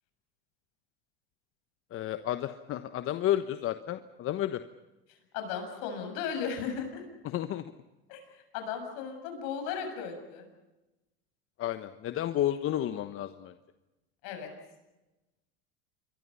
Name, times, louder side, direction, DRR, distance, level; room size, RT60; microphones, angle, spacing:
voice 1, 1.9-4.6 7.2-7.6 11.6-13.5, left 12 dB, 45° left, 10 dB, 1.2 m, -31 dB
voice 2, 5.3-7.0 8.1-8.2 8.5-10.5 14.2-14.5, left 7 dB, 70° left, 5 dB, 7.4 m, -36 dB
28.0 x 23.5 x 5.7 m, 1.0 s
hypercardioid pair, 90°, 30 cm